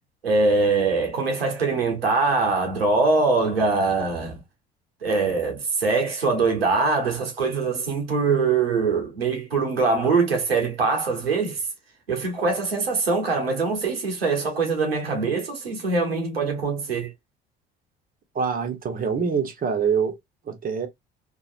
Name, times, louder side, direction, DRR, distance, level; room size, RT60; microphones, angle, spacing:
voice 1, 0.2-4.4 5.0-11.6 12.1-17.1, right 4 dB, 90° right, 0.9 m, -23 dB
voice 2, 18.3-20.2 20.5-20.9, right 6 dB, 30° right, 0.9 m, -25 dB
2.9 x 2.4 x 2.4 m
figure-of-eight pair, 60°, 29 cm